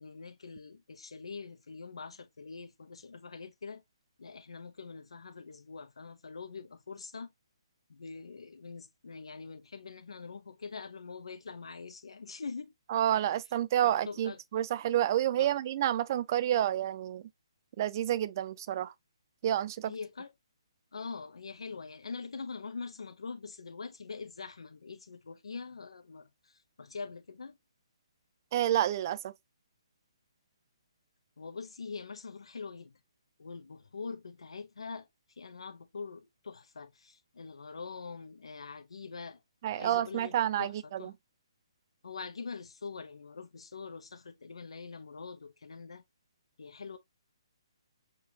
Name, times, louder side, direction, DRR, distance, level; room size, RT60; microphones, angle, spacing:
voice 1, 0.0-3.8 4.2-7.3 7.9-12.7 13.8-14.4 15.4-15.5 19.9-20.3 20.9-27.6 31.4-33.0 33.4-39.4 39.7-41.1 42.0-46.0 46.6-47.0, left 4 dB, 80° left, 0.6 m, -44 dB
voice 2, 12.9-17.3 17.8-18.9 19.4-19.9 28.5-29.3 39.6-41.1, right 12 dB, 40° right, 0.4 m, -29 dB
6.6 x 2.2 x 2.8 m
hypercardioid pair, 145°, 3 cm